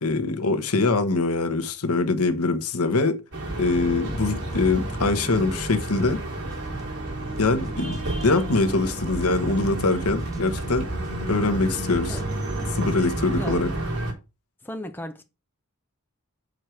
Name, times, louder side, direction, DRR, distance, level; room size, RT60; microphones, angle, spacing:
voice 1, 0.0-3.2 3.6-6.2 7.4-10.9 11.3-12.2 12.7-13.7, left 3 dB, 90° left, 1.2 m, -23 dB
sound 1, 3.3-14.1, right 2 dB, 85° right, 3.5 m, -30 dB
sound 2, 3.7-12.7, left 1 dB, 15° right, 1.1 m, -42 dB
voice 2, 13.3-13.7 14.6-15.2, equal, 10° left, 0.9 m, -35 dB
6.5 x 4.6 x 6.4 m
head